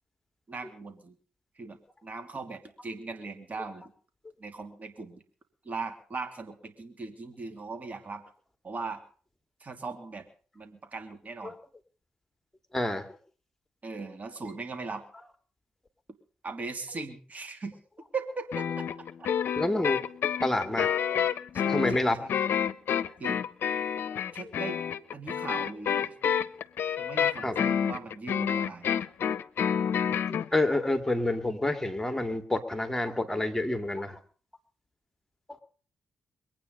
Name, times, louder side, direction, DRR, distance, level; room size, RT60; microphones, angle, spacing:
voice 1, 0.5-1.2 1.6-3.9 4.4-5.2 5.6-8.2 8.6-9.0 9.6-10.2 10.5-11.5 13.8-15.0 16.4-17.8 18.1-18.9 19.2-19.3 21.5-22.3 23.2-23.4 24.3-24.8 25.1-26.1 27.0-28.9, right 4 dB, 40° right, 7 dB, 2.8 m, -39 dB
voice 2, 12.7-13.1 19.6-20.0 20.4-21.2 21.7-22.2 24.3-24.4 26.5-26.6 27.2-27.6 30.3-34.2, left 2 dB, 10° left, 7 dB, 2.4 m, -28 dB
sound 1, 18.5-30.5, left 8 dB, 65° left, 0.6 m, -28 dB
22.5 x 9.1 x 5.4 m, 0.43 s
hypercardioid pair, 40°, 4 cm